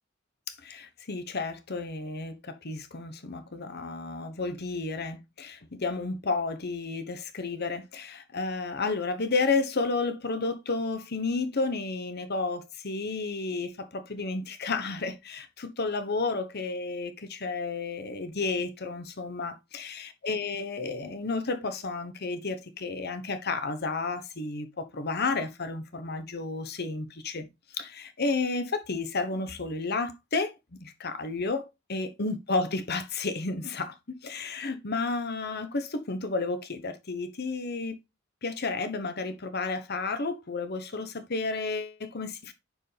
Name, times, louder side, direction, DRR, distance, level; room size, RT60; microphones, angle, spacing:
voice 1, 0.6-27.5 27.7-33.9 34.2-38.0 38.4-42.5, left 3 dB, 50° left, 1.1 m, -32 dB
9.7 x 4.7 x 3.3 m
head